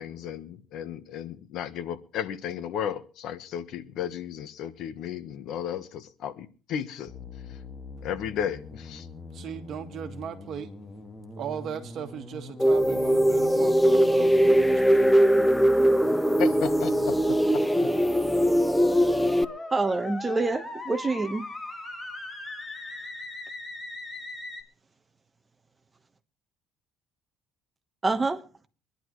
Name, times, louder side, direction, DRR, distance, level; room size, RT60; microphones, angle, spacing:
voice 1, 0.0-7.1 8.0-9.1 16.4-17.4, left 9 dB, 65° left, 1.1 m, -34 dB
sound 1, 7.1-24.6, left 2 dB, 20° left, 1.9 m, -39 dB
voice 2, 9.3-10.7 11.4-15.2, right 8 dB, 50° right, 1.7 m, -37 dB
sound 2, 12.6-19.4, equal, 5° left, 0.5 m, -21 dB
voice 3, 19.7-21.4 28.0-28.4, right 3 dB, 15° right, 1.2 m, -26 dB
24.0 x 11.0 x 3.1 m
cardioid pair, 125°, 0 cm